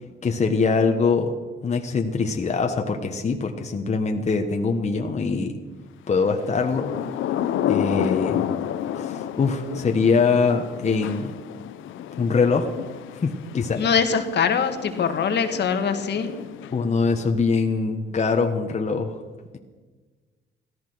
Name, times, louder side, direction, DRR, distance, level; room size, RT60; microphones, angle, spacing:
voice 1, 0.2-1.3 1.6-5.5 6.1-7.0 7.7-8.4 8.9-11.4 12.2-12.7 13.2-13.8 16.7-19.2 19.5-19.6, left 4 dB, 35° left, 4 dB, 1.3 m, -23 dB
Thunder / Rain, 6.5-17.1, left 10 dB, 85° left, 0.8 m, -30 dB
voice 2, 13.8-16.3, left 6 dB, 60° left, 7 dB, 1.7 m, -23 dB
15.5 x 14.0 x 6.2 m, 1.3 s
cardioid pair, 90°, 20 cm